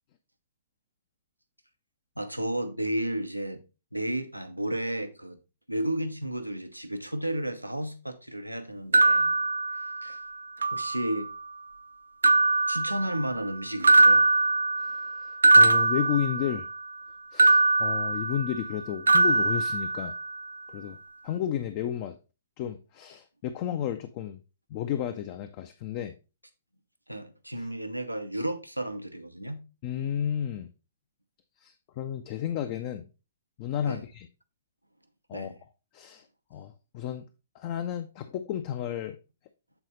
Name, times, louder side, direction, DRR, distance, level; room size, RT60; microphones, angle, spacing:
voice 1, 2.2-3.6 3.9-5.4 5.7-9.3 9.7-10.2 10.7-11.3 12.7-14.2 27.1-29.6 33.8-34.0 35.3-35.6, right 1 dB, 90° right, 0.9 m, -33 dB
sound 1, 8.9-10.2 10.6-11.4 12.2-13.5 13.8-16.8 17.4-18.8 19.1-20.4, right 3 dB, 70° right, 0.3 m, -22 dB
voice 2, 15.5-16.7 17.3-20.1 20.7-21.0 21.2-22.1 22.6-24.4 24.7-26.1 29.8-30.7 31.6-33.0 33.6-34.3 35.3-35.5 35.9-36.2 36.5-37.2 37.6-39.2, left 10 dB, 35° left, 0.5 m, -32 dB
8.0 x 4.1 x 3.8 m
figure-of-eight pair, 115°, 0 cm